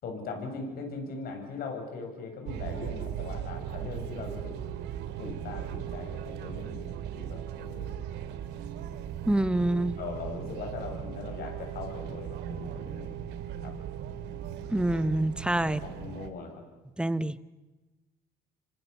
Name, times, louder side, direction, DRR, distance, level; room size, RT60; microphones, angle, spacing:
voice 1, 0.0-4.5 5.2-8.0 10.0-13.1 13.6-13.7 15.6-16.7, left 4 dB, 65° left, 4 dB, 7.8 m, -40 dB
sound 1, 2.5-16.3, right 9 dB, 90° right, 2.2 m, -38 dB
voice 2, 9.3-10.0 14.7-15.8 17.0-17.4, right 1 dB, 5° right, 15 dB, 1.0 m, -26 dB
27.5 x 24.5 x 7.2 m, 1.1 s
cardioid pair, 110°, 17 cm